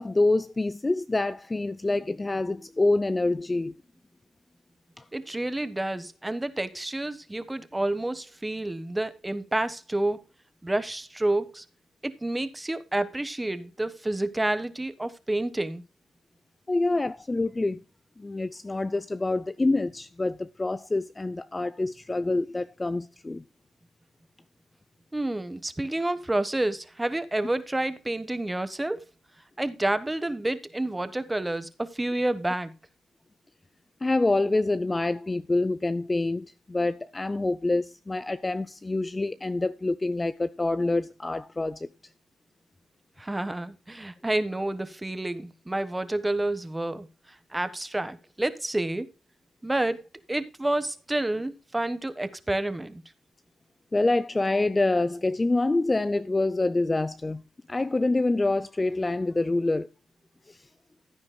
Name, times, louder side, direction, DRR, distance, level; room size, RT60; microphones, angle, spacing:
voice 1, 0.0-3.7 16.7-17.8 18.2-23.4 34.0-41.9 53.9-57.4 57.7-59.9 60.5-60.6, left 2 dB, 20° left, 0.5 m, -26 dB
voice 2, 5.1-10.2 10.6-11.6 12.0-15.8 25.1-29.1 29.6-32.7 43.2-47.1 47.5-49.1 49.6-53.0, right 1 dB, 10° right, 1.3 m, -29 dB
15.5 x 9.6 x 2.2 m
cardioid pair, 90°, 0 cm